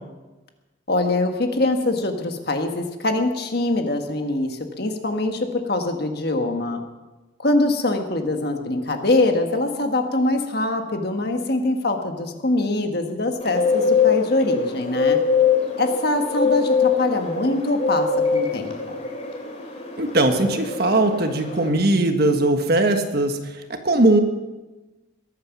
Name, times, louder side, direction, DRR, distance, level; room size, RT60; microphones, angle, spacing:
voice 1, 0.9-6.8 7.4-15.2 15.8-19.0, left 2 dB, 50° left, 5 dB, 1.5 m, -23 dB
Bird, 13.4-21.7, left 5 dB, 35° left, 2.6 m, -23 dB
voice 2, 20.0-23.4 23.8-24.2, right 2 dB, 50° right, 6 dB, 1.5 m, -19 dB
21.0 x 9.1 x 6.0 m, 1.2 s
head